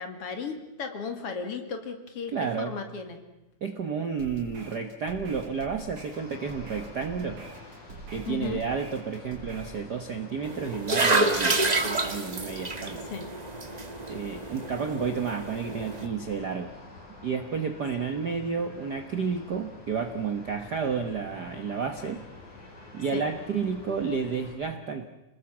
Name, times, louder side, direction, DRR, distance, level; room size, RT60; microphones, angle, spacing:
voice 1, 0.0-3.2 8.3-8.6 13.1-13.3 23.1-23.3, left 5 dB, 50° left, 7 dB, 2.9 m, -35 dB
voice 2, 2.3-2.7 3.6-7.4 8.1-13.1 14.1-16.7 17.2-22.2 22.9-25.1, right 5 dB, 55° right, 7 dB, 1.2 m, -31 dB
sound 1, 4.2-9.8, right 3 dB, 75° right, 5.5 m, -45 dB
sound 2, 6.1-24.5, left 2 dB, 90° left, 7.3 m, -48 dB
sound 3, 10.4-16.1, right 2 dB, 35° right, 0.6 m, -28 dB
28.0 x 19.0 x 7.3 m, 0.95 s
omnidirectional pair, 3.4 m